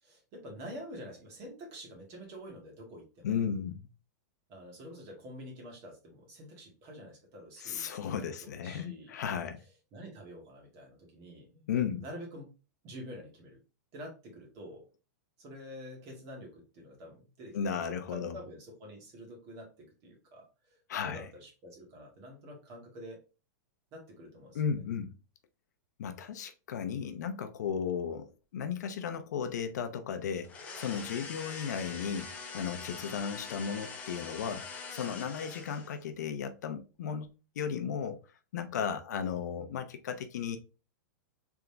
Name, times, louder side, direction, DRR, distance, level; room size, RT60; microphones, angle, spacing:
voice 1, 0.0-3.3 4.5-7.9 8.2-9.1 9.9-11.6 12.0-12.5 12.8-13.6 13.9-14.8 15.4-23.2 23.9-24.6, equal, 30° right, 2.1 m, -47 dB
voice 2, 3.2-3.9 7.6-9.6 11.7-12.0 17.5-18.4 20.9-21.3 24.5-25.1 26.0-37.3 37.6-38.2 38.5-40.6, left 7 dB, 70° left, 0.7 m, -35 dB
sound 1, 30.4-36.1, left 4 dB, 15° left, 0.7 m, -43 dB
3.9 x 3.7 x 3.4 m
supercardioid pair, 165°, 10 cm